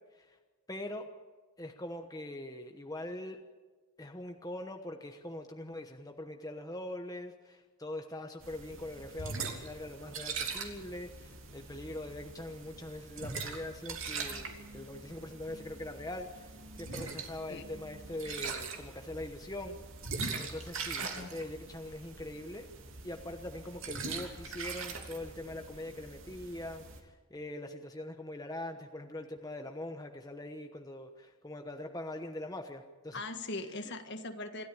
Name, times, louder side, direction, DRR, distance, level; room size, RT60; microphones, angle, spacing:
voice 1, 0.7-1.1 1.6-3.4 4.0-19.8 20.4-22.7 23.0-33.2 33.9-34.0, left 1 dB, 15° left, 4 dB, 1.1 m, -42 dB
sound 1, 8.4-27.0, right 4 dB, 60° right, 3.0 m, -42 dB
voice 2, 21.0-21.4 33.1-34.7, left 2 dB, 50° left, 7 dB, 1.7 m, -40 dB
27.0 x 13.0 x 8.7 m, 1.3 s
head